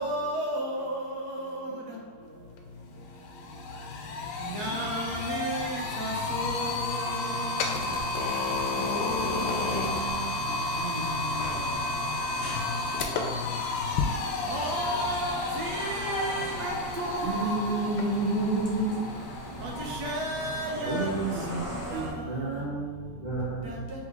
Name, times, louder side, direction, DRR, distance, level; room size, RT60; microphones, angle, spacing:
voice 1, 0.0-1.7 4.5-6.8 8.8-9.7 14.5-17.8 19.6-19.7 20.0-21.1 21.9-22.1 23.6-23.7, right 1 dB, 70° right, 1.3 m, -32 dB
sound 1, 2.6-2.7 3.0-22.0, left 3 dB, 90° left, 1.2 m, -32 dB
sound 2, 7.7-22.1, right 1 dB, 10° right, 0.8 m, -42 dB
voice 2, 10.5-11.8 12.4-12.6 19.7-20.1, left 1 dB, 50° left, 0.9 m, -43 dB
voice 3, 17.2-19.1 20.8-23.9, right 2 dB, 40° right, 0.7 m, -30 dB
3.7 x 3.4 x 3.4 m
omnidirectional pair, 1.8 m